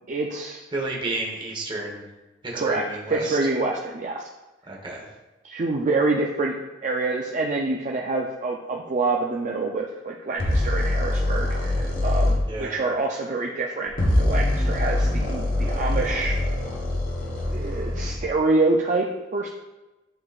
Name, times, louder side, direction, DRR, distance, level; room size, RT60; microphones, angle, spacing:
voice 1, 0.1-0.7 2.5-4.2 5.5-6.6 6.8-16.4 17.5-19.1 19.3-19.5, right 3 dB, 40° right, 0 dB, 0.5 m, -26 dB
voice 2, 0.7-2.0 2.4-3.4 4.7-5.1 12.5-12.7 17.5-17.8, right 2 dB, 25° right, -1 dB, 1.2 m, -31 dB
sound 1, 10.4-12.4 13.9-18.2, left 1 dB, 50° left, 1.0 m, -24 dB
10.5 x 3.9 x 2.4 m, 1.1 s
head